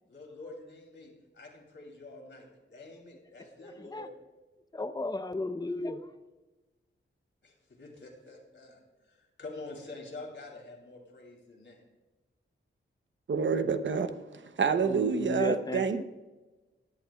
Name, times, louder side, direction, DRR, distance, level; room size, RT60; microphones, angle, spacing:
voice 1, 0.1-4.1 7.4-11.8, left 2 dB, 65° left, 1 dB, 2.9 m, -47 dB
voice 2, 3.6-4.1 4.7-6.1 14.8-16.0, left 2 dB, 20° left, 9 dB, 0.6 m, -35 dB
voice 3, 13.3-16.0, right 5 dB, 65° right, 10 dB, 0.7 m, -28 dB
20.5 x 11.0 x 2.3 m, 1.2 s
wide cardioid pair, 150°, 21 cm